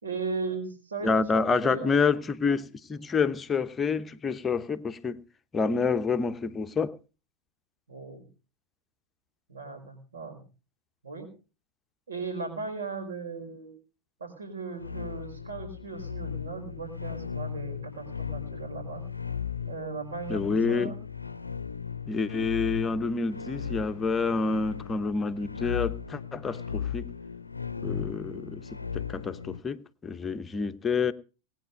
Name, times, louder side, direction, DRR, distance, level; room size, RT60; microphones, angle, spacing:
voice 1, 0.0-1.9 7.9-8.2 9.5-10.4 11.0-11.3 12.1-13.7 14.2-19.0 19.7-20.4 20.7-21.0, right 4 dB, 70° right, 4.8 m, -37 dB
voice 2, 1.0-5.2 5.5-7.0 20.3-20.9 22.1-27.1 27.8-31.1, left 5 dB, 20° left, 1.0 m, -28 dB
sound 1, 14.8-29.6, left 7 dB, 80° left, 0.7 m, -37 dB
19.5 x 9.2 x 5.3 m
figure-of-eight pair, 90°, 0 cm